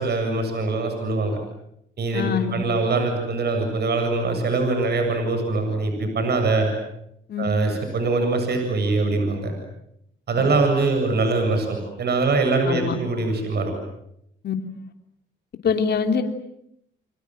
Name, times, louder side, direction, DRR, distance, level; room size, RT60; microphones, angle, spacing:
voice 1, 0.0-1.4 2.0-6.7 7.4-9.5 10.3-13.7, right 3 dB, 55° right, 5 dB, 7.8 m, -23 dB
voice 2, 2.1-2.5 7.3-7.4 12.6-13.0 14.4-14.5 15.6-16.2, left 6 dB, 55° left, 5 dB, 3.0 m, -23 dB
29.5 x 24.5 x 7.9 m, 0.78 s
cardioid pair, 90°, 20 cm